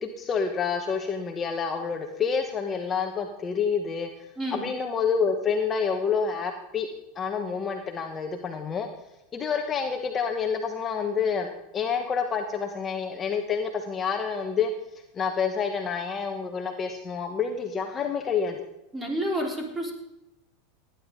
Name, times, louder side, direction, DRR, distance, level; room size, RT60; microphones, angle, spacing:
voice 1, 0.0-4.1 4.5-6.9 7.2-8.9 9.3-14.7 15.1-18.6, left 6 dB, 25° left, 4 dB, 1.2 m, -28 dB
voice 2, 4.4-4.7 18.9-19.9, right 1 dB, 15° right, 0 dB, 3.4 m, -29 dB
18.0 x 10.0 x 3.8 m, 0.91 s
hypercardioid pair, 110°, 0 cm